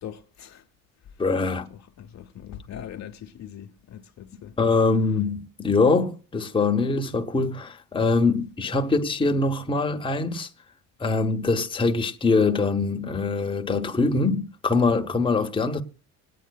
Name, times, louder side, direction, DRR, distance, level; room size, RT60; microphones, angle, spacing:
voice 1, 0.0-0.6 1.7-4.6, left 9 dB, 45° left, 0.8 m, -41 dB
voice 2, 1.2-1.7 4.6-10.5 11.0-15.8, left 3 dB, 15° left, 0.8 m, -23 dB
25.5 x 9.3 x 2.3 m
supercardioid pair, 85°, 37 cm